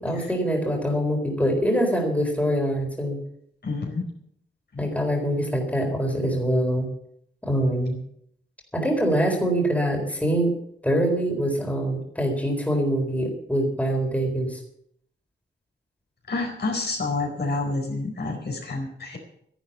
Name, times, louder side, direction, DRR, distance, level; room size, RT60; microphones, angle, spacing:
voice 1, 0.0-3.2 4.8-6.9 7.4-8.0 8.7-10.5 10.8-14.6, equal, 5° left, 1 dB, 4.1 m, -24 dB
voice 2, 3.6-4.1 4.7-4.9 16.3-19.2, left 3 dB, 60° left, 1 dB, 4.5 m, -29 dB
13.5 x 11.5 x 6.9 m, 0.70 s
wide cardioid pair, 130°, 20 cm